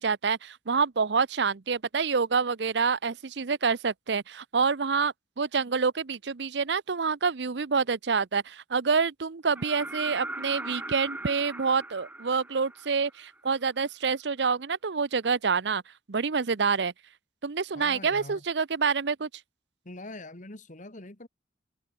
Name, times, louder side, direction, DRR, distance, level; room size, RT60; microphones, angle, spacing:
voice 1, 0.0-15.8 16.1-16.9 17.4-19.3, right 5 dB, 70° right, 0.7 m, -27 dB
sound 1, 9.6-13.3 15.2-15.3, right 2 dB, 10° right, 1.8 m, -39 dB
voice 2, 17.7-18.4 19.9-21.3, left 2 dB, 45° left, 2.3 m, -43 dB
head